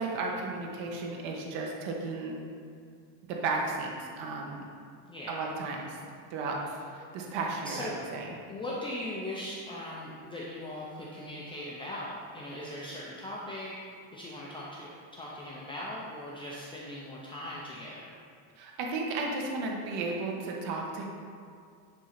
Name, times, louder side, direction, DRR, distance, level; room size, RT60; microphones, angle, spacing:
voice 1, 0.0-2.4 3.3-4.6 5.3-6.0 6.3-6.6 6.9-8.3 18.6-21.0, right 3 dB, 65° right, -1 dB, 1.4 m, -34 dB
voice 2, 5.1-5.4 7.6-7.9 8.5-13.8 14.1-18.1, left 1 dB, 10° left, -6 dB, 0.4 m, -39 dB
10.0 x 3.7 x 5.8 m, 2.2 s
cardioid pair, 165°, 47 cm